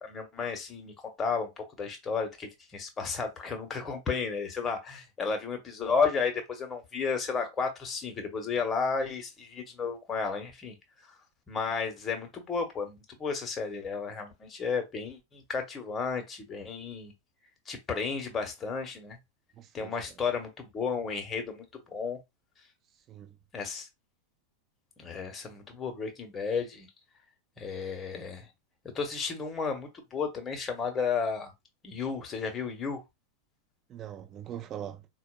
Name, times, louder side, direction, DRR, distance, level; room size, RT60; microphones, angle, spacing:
voice 1, 0.0-10.8 11.5-17.1 17.7-19.2 19.7-22.2 23.5-23.9 25.0-26.9 27.6-28.5 28.9-31.5 31.8-33.0, left 5 dB, 20° left, 1.0 m, -33 dB
voice 2, 19.5-20.2 23.1-23.4 33.9-35.1, right 10 dB, 30° right, 0.6 m, -42 dB
4.2 x 2.3 x 2.2 m
figure-of-eight pair, 90°, 0 cm